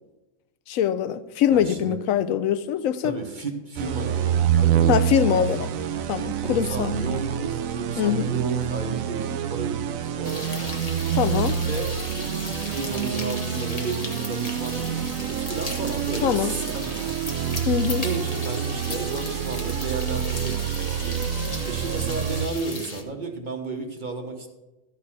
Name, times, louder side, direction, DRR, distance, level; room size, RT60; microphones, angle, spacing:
voice 1, 0.7-3.2 4.9-5.7 6.1-6.9 8.0-8.2 11.1-11.6 16.2-16.5 17.7-18.0, left 9 dB, 80° left, 1.0 m, -23 dB
voice 2, 1.5-2.0 3.0-5.7 6.4-10.7 11.5-17.3 18.0-21.2 21.6-24.5, right 3 dB, 35° right, 1.3 m, -33 dB
sound 1, 3.8-22.5, right 9 dB, 85° right, 1.1 m, -27 dB
sound 2, 10.2-23.0, left 2 dB, 30° left, 1.3 m, -36 dB
13.5 x 4.7 x 7.2 m
omnidirectional pair, 1.4 m